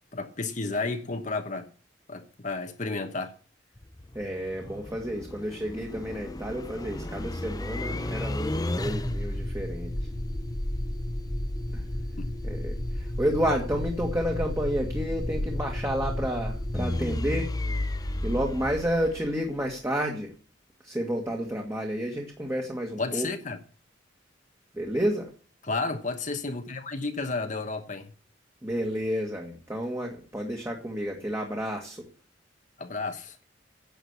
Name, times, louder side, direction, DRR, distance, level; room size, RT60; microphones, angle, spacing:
voice 1, 0.1-1.7 2.1-3.3 12.2-12.3 23.0-23.6 25.6-28.1 32.8-33.4, left 3 dB, 40° left, 1.1 m, -32 dB
sound 1, 3.8-19.7, left 1 dB, 20° left, 0.8 m, -32 dB
voice 2, 4.2-9.9 11.7-11.8 12.4-17.5 18.2-20.3 20.8-23.3 24.7-25.3 28.6-32.0, equal, 15° right, 1.8 m, -30 dB
10.5 x 7.3 x 8.1 m
head